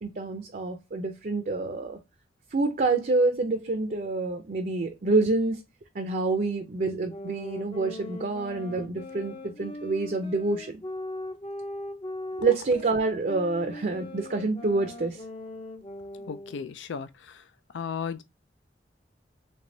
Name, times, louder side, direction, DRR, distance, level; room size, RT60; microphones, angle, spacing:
voice 1, 0.0-2.0 2.5-5.6 6.0-10.8 12.4-15.2, right 3 dB, 50° right, 0.5 m, -27 dB
sound 1, 7.1-16.7, left 1 dB, 30° left, 0.5 m, -40 dB
voice 2, 16.3-17.5 17.7-18.2, left 6 dB, 90° left, 0.4 m, -35 dB
3.4 x 3.2 x 2.6 m
head